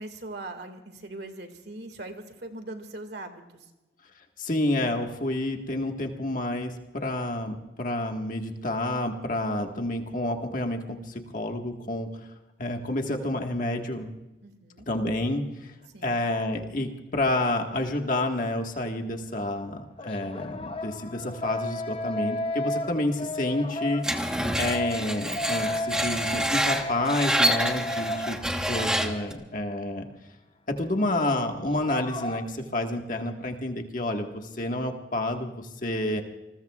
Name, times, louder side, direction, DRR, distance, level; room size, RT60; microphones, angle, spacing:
voice 1, 0.0-3.7 14.4-14.9 15.9-16.2, right 2 dB, 60° right, 7 dB, 2.1 m, -41 dB
voice 2, 4.4-12.1 12.6-14.1 14.9-15.7 16.0-24.3 24.6-28.4 28.7-30.1 30.7-36.2, left 1 dB, 45° left, 3 dB, 1.6 m, -29 dB
sound 1, 20.0-28.9 29.1-29.2 31.6-32.4, left 1 dB, 30° left, 0.7 m, -33 dB
Screech, 24.0-29.3, equal, 5° right, 1.2 m, -27 dB
28.5 x 20.5 x 2.4 m, 1.0 s
head